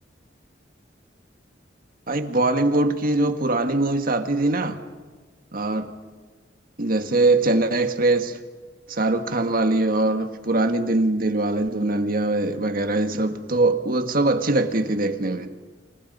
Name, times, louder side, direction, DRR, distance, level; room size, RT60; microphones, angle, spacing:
voice 1, 2.1-4.8 5.5-5.9 6.8-8.4 8.9-15.5, right 2 dB, 50° right, 1.6 m, -22 dB
29.0 x 29.0 x 5.5 m
head